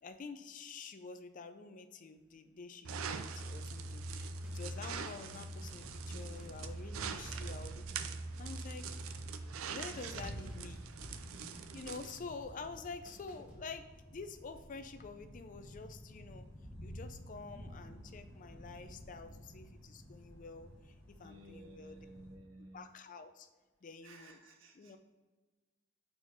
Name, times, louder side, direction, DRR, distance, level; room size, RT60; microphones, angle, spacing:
voice 1, 0.0-7.8 8.4-9.1 9.7-10.9 11.7-16.5 16.8-22.0 22.7-23.5 23.8-24.4 24.7-25.0, left 4 dB, 40° left, 9 dB, 0.4 m, -48 dB
sound 1, 2.8-12.2, right 4 dB, 85° right, 0.4 m, -42 dB
sound 2, 3.5-13.9, equal, 10° right, 1.5 m, -57 dB
sound 3, 5.5-22.3, equal, 15° left, 1.6 m, -52 dB
voice 2, 21.2-22.9 24.0-24.9, right 1 dB, 70° right, 2 dB, 0.9 m, -54 dB
4.4 x 4.3 x 5.4 m, 1.3 s
head